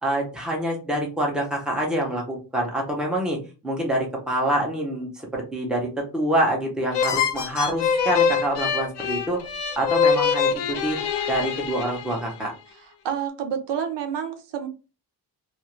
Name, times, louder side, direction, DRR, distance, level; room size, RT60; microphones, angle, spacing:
voice 1, 0.0-3.4 3.6-9.4 9.8-11.0 11.3-12.5, right 1 dB, ahead, -1 dB, 0.6 m, -26 dB
sound 1, 6.9-12.4, left 6 dB, 75° left, 0.6 m, -24 dB
voice 2, 13.0-14.7, right 8 dB, 80° right, 6 dB, 0.7 m, -28 dB
2.4 x 2.4 x 3.0 m, 0.32 s
wide cardioid pair, 165°, 41 cm